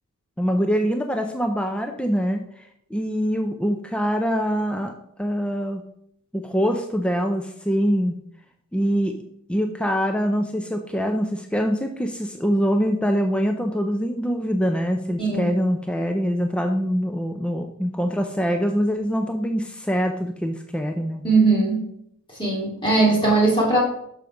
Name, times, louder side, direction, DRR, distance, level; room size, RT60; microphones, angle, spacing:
voice 1, 0.4-2.4 2.9-4.9 5.2-5.8 6.3-8.2 8.7-9.2 9.5-21.2, equal, 5° left, 5 dB, 0.4 m, -24 dB
voice 2, 15.2-15.5 21.2-21.8 22.4-23.8, right 3 dB, 25° left, -5 dB, 2.7 m, -19 dB
6.3 x 5.1 x 5.8 m, 0.73 s
head